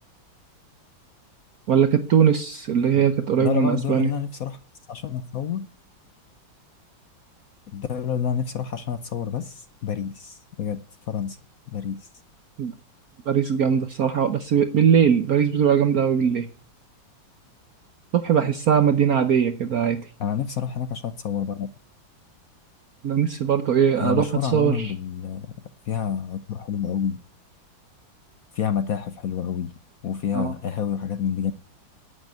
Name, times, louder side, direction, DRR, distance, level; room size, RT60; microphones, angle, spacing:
voice 1, 1.7-4.1 12.6-12.7 13.3-16.5 18.1-20.0 23.0-24.3 24.5-24.9 30.3-30.5, right 8 dB, 60° right, 1.1 m, -20 dB
voice 2, 3.4-4.6 4.9-5.7 7.7-11.4 11.7-12.1 20.2-21.7 24.0-25.6 25.9-27.2 28.5-29.7 30.0-31.5, left 8 dB, 60° left, 1.0 m, -28 dB
11.0 x 8.9 x 9.4 m
omnidirectional pair, 2.2 m